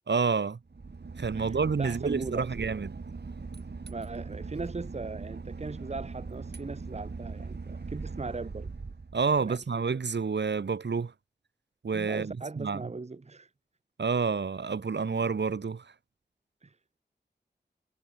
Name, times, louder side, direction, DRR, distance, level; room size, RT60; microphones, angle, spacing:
voice 1, 0.1-0.6 1.2-3.0 9.1-11.1 11.8-12.8 14.0-15.9, right 5 dB, 90° right, 2.3 m, -29 dB
Boat Water vehicle / Engine, 0.7-9.6, right 4 dB, 70° right, 6.0 m, -40 dB
voice 2, 1.3-2.5 3.9-8.7 9.4-9.8 11.9-13.5 16.6-16.7, right 3 dB, 40° right, 1.1 m, -39 dB
wide cardioid pair, 65°, 18 cm